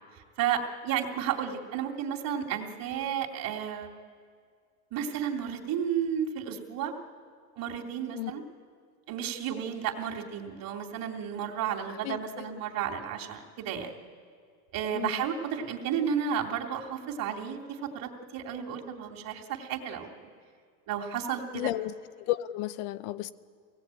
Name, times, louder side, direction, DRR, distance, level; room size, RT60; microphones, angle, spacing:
voice 1, 0.4-3.9 4.9-6.9 7.6-8.4 9.1-13.9 14.7-20.3 20.9-21.7, right 8 dB, 45° right, 1 dB, 2.9 m, -32 dB
voice 2, 8.1-8.4 12.0-12.6 14.9-15.2 21.5-21.9 22.2-23.3, left 15 dB, 60° left, 14 dB, 1.0 m, -33 dB
23.5 x 18.0 x 8.9 m, 2.1 s
supercardioid pair, 115°, 49 cm